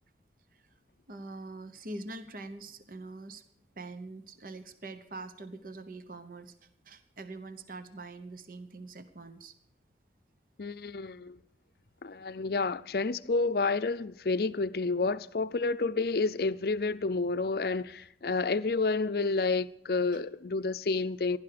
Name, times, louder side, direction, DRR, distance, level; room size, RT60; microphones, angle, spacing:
voice 1, 1.1-3.4 3.8-6.5 6.8-9.5, right 2 dB, 50° right, 0.9 m, -44 dB
voice 2, 10.6-11.4 12.0-21.4, left 3 dB, 55° left, 0.5 m, -30 dB
15.5 x 11.5 x 6.8 m
head